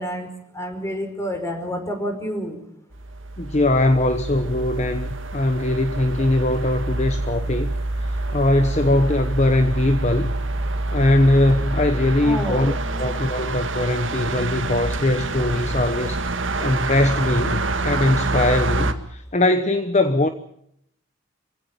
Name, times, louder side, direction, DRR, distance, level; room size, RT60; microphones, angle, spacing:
voice 1, 0.0-2.6 12.2-12.7, equal, 15° left, 5.1 m, -29 dB
sound 1, 2.9-18.9, right 2 dB, 80° right, 1.9 m, -26 dB
voice 2, 3.4-7.7 8.0-10.3 10.9-20.3, left 1 dB, 35° left, 1.1 m, -21 dB
26.5 x 16.5 x 9.1 m
head